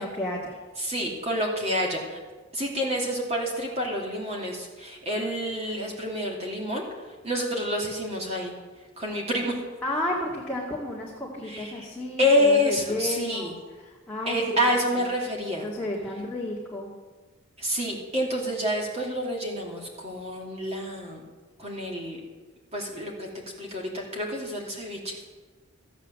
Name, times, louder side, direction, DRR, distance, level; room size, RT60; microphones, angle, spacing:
voice 1, 0.0-0.6 9.8-13.5 13.8-14.4 15.6-16.9, left 1 dB, 10° left, -6 dB, 2.0 m, -32 dB
voice 2, 0.8-2.2 2.5-6.8 7.2-8.5 9.0-9.5 11.5-11.9 12.2-13.5 14.3-15.6 17.6-21.2 21.6-22.2 22.7-23.3 23.6-25.2, left 1 dB, 30° right, -1 dB, 2.9 m, -28 dB
15.0 x 8.2 x 7.5 m, 1.3 s
head